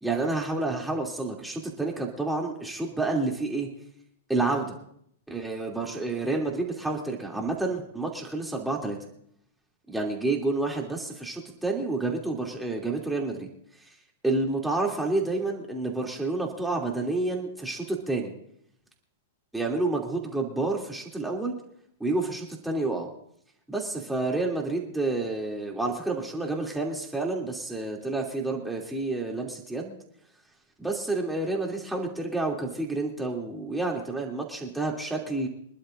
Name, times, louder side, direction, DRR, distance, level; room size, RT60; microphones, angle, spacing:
voice 1, 0.0-3.7 4.3-4.7 5.3-9.0 9.9-13.5 14.2-18.3 19.5-21.5 22.0-23.1 23.7-30.0 30.8-35.5, right 2 dB, 5° right, -1 dB, 2.9 m, -29 dB
26.0 x 11.5 x 2.6 m, 0.70 s
hypercardioid pair, 110°, 0 cm